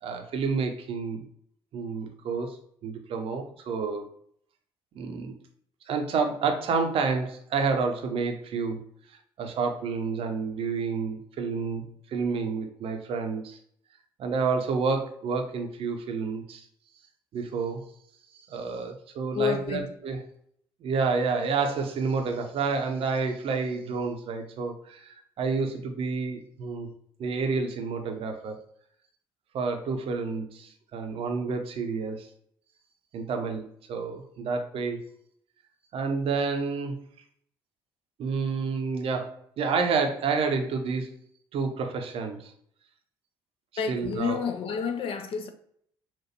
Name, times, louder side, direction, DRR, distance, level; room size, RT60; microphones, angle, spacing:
voice 1, 0.0-1.2 1.7-4.1 4.9-5.4 5.9-8.8 9.4-13.6 14.2-16.6 17.3-17.9 18.5-20.2 20.8-26.9 27.2-28.6 29.5-32.3 33.1-35.1 35.9-37.0 38.2-41.2 41.5-42.5 43.9-44.4, right 4 dB, 50° right, 0.7 m, -29 dB
voice 2, 19.3-19.9 43.8-45.5, left 6 dB, 45° left, 0.6 m, -29 dB
5.8 x 2.5 x 2.9 m
figure-of-eight pair, 50°, 13 cm